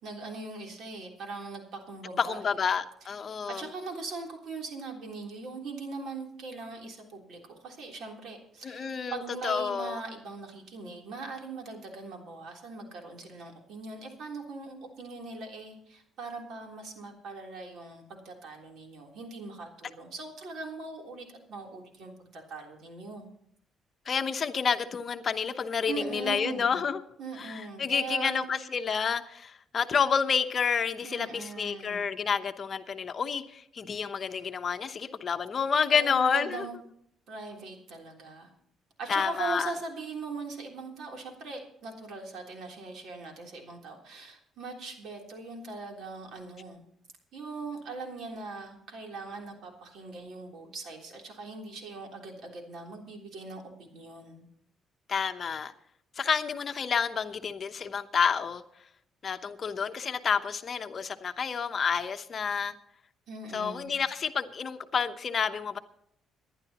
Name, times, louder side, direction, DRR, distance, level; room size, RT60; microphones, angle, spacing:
voice 1, 0.0-2.5 3.5-23.3 25.9-26.8 27.2-28.5 31.0-32.2 35.9-36.8 37.3-38.5 39.0-46.8 47.3-54.4 63.3-63.9, right 3 dB, 70° right, 1 dB, 3.4 m, -40 dB
voice 2, 2.2-3.6 8.6-10.0 24.1-27.0 27.4-36.7 39.1-39.7 55.1-55.7 56.2-58.6 59.2-62.7 63.5-65.8, left 6 dB, 40° left, 9 dB, 0.9 m, -29 dB
25.5 x 11.0 x 3.0 m, 0.71 s
cardioid pair, 115°, 0 cm